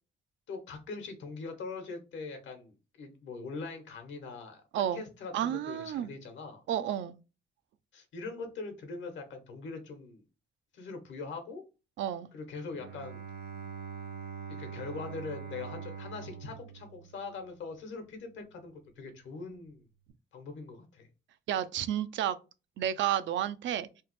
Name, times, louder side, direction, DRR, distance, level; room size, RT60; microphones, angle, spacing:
voice 1, 0.5-6.6 7.9-10.2 10.7-11.6 12.3-13.2 14.5-19.8 20.3-21.1, left 4 dB, 70° left, 1.1 m, -42 dB
voice 2, 5.3-6.1 6.7-7.1 12.0-12.3 21.5-22.4 22.8-23.9, right 10 dB, 70° right, 0.4 m, -31 dB
Bowed string instrument, 12.7-17.7, right 7 dB, 55° right, 0.8 m, -43 dB
3.2 x 2.0 x 3.0 m
cardioid pair, 90°, 20 cm